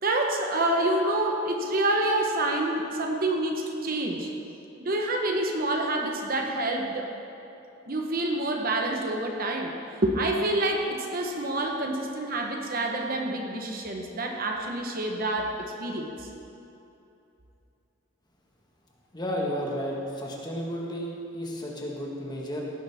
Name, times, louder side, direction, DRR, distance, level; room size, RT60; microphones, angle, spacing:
voice 1, 0.0-4.3 4.8-7.1 7.9-16.3, right 1 dB, 45° right, 2 dB, 1.0 m, -27 dB
voice 2, 19.1-22.6, equal, 20° left, -2 dB, 1.5 m, -32 dB
16.5 x 10.5 x 3.5 m, 2.8 s
head